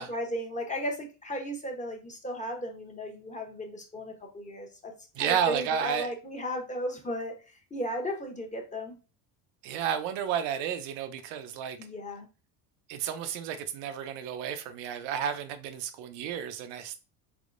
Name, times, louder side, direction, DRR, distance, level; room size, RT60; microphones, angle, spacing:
voice 1, 0.1-4.9 5.2-7.3 7.7-9.0 11.8-12.3, equal, 15° left, 0.8 m, -35 dB
voice 2, 5.2-6.1 9.6-11.8 12.9-17.0, right 8 dB, 80° right, 0.6 m, -32 dB
3.6 x 3.0 x 2.4 m
supercardioid pair, 110°, 43 cm